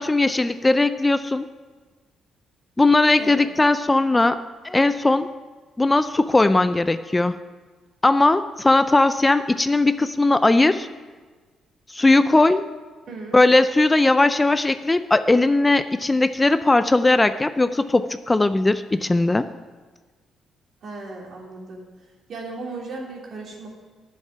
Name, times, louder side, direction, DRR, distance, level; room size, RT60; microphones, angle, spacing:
voice 1, 0.0-1.4 2.8-5.3 5.8-7.4 8.0-10.9 11.9-12.6 13.3-19.5, left 2 dB, 15° left, 12 dB, 0.4 m, -18 dB
voice 2, 13.1-13.4 20.8-21.9 22.3-23.7, right 3 dB, 60° right, -1 dB, 3.2 m, -36 dB
10.5 x 7.2 x 9.3 m, 1.4 s
cardioid pair, 90°, 0 cm